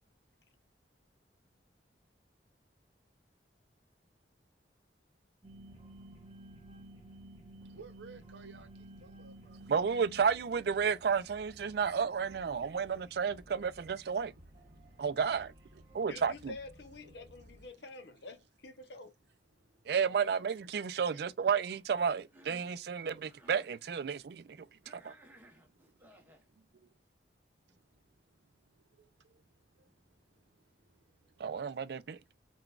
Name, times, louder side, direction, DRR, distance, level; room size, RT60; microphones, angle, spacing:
sound 1, 5.4-17.7, right 1 dB, 30° right, 1.4 m, -55 dB
voice 1, 7.6-9.4 14.7-15.0 15.7-16.1 17.4-17.8 19.5-19.9 21.1-21.2 27.7-27.8 28.7-31.6 32.2-32.4, right 5 dB, 85° right, 0.7 m, -58 dB
voice 2, 9.7-14.3 15.0-15.5 15.9-16.6 19.9-24.6 24.9-25.1 31.4-32.2, right 6 dB, 60° right, 0.4 m, -32 dB
voice 3, 16.1-19.1, left 3 dB, 70° left, 0.8 m, -48 dB
Cough, 22.2-22.8 23.2-23.7 24.8-26.5, right 1 dB, 10° right, 0.8 m, -59 dB
5.8 x 2.2 x 2.4 m
head